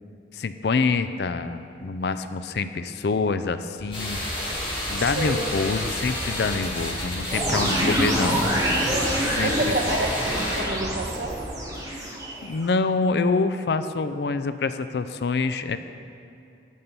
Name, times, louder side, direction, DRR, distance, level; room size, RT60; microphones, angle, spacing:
voice 1, 0.3-4.2 4.9-8.4 9.3-9.5 12.4-15.8, left 4 dB, 70° left, 11 dB, 0.4 m, -26 dB
sound 1, 3.8-11.5, equal, 40° right, 2.7 m, -37 dB
sound 2, 3.9-10.6, left 1 dB, 30° left, 2.4 m, -31 dB
voice 2, 5.0-5.5 9.4-11.4, right 2 dB, 70° right, 0 dB, 1.3 m, -29 dB
sound 3, 7.3-12.7, equal, 20° right, 1.9 m, -26 dB
11.5 x 5.5 x 6.8 m, 2.5 s
head